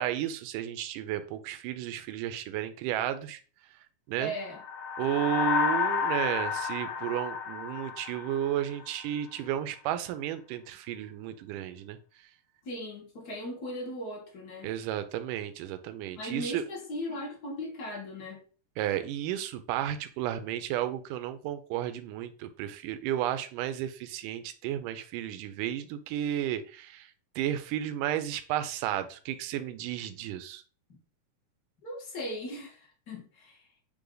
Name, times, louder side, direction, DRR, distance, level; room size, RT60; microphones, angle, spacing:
voice 1, 0.0-3.4 4.1-4.3 5.0-12.0 14.6-16.6 18.8-27.1 27.4-30.6, right 11 dB, 80° right, 2.3 m, -33 dB
voice 2, 4.2-4.6 12.6-14.7 16.2-18.4 31.8-33.7, equal, 35° left, 2.1 m, -38 dB
sound 1, 4.5-9.0, left 6 dB, 80° left, 1.2 m, -31 dB
8.4 x 3.4 x 3.9 m
omnidirectional pair, 3.8 m